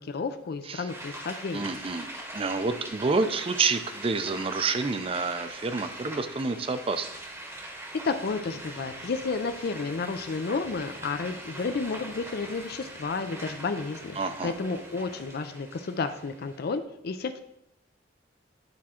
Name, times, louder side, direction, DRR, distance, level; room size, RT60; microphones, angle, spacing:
voice 1, 0.0-1.7 8.0-17.4, left 4 dB, 55° left, 9 dB, 0.4 m, -32 dB
sound 1, 0.9-16.7, right 1 dB, 15° right, 1.0 m, -42 dB
voice 2, 1.5-2.1 2.3-7.1 14.2-14.5, right 4 dB, 30° right, 10 dB, 0.5 m, -28 dB
sound 2, 8.0-15.2, equal, 85° right, 1.5 m, -51 dB
9.5 x 3.6 x 4.3 m, 0.78 s
head